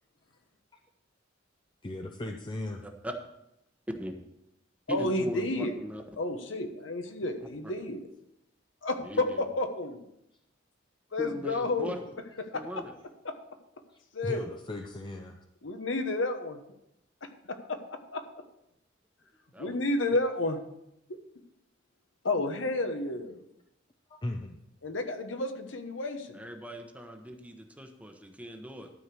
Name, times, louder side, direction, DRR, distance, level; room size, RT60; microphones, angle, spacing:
voice 1, 1.8-2.9 13.9-15.4 24.1-24.6, left 1 dB, 25° left, 4 dB, 0.6 m, -37 dB
voice 2, 2.8-3.1 3.9-4.2 4.9-6.0 7.6-7.7 9.0-9.4 11.2-12.0 12.5-12.9 19.5-19.8 26.3-28.9, equal, 5° right, 4 dB, 1.0 m, -39 dB
voice 3, 4.9-5.7 6.2-8.1 8.8-10.0 11.1-11.9 12.5-12.6 13.2-13.3 14.1-14.4 15.6-16.6 17.5-18.2 19.6-20.6 21.1-21.2 22.2-23.4 24.8-26.4, left 2 dB, 75° left, 6 dB, 1.1 m, -31 dB
12.5 x 4.8 x 6.9 m, 0.84 s
head